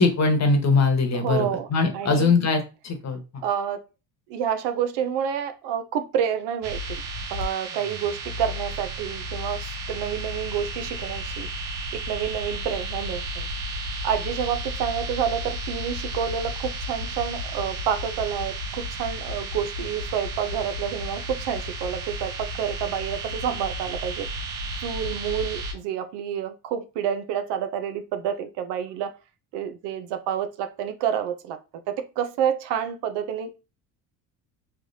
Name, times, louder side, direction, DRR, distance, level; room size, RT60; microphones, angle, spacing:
voice 1, 0.0-3.2, left 3 dB, 35° left, 5 dB, 1.1 m, -21 dB
voice 2, 1.1-1.7 1.9-2.3 3.4-3.8 4.3-7.0 7.3-11.5 11.9-13.5 14.0-24.3 24.8-29.1 29.5-31.6 31.9-33.5, right 8 dB, 65° right, 9 dB, 0.7 m, -29 dB
sound 1, 6.6-25.7, right 1 dB, 85° right, 0.9 m, -33 dB
3.3 x 3.2 x 2.7 m, 0.29 s
supercardioid pair, 75°, 44 cm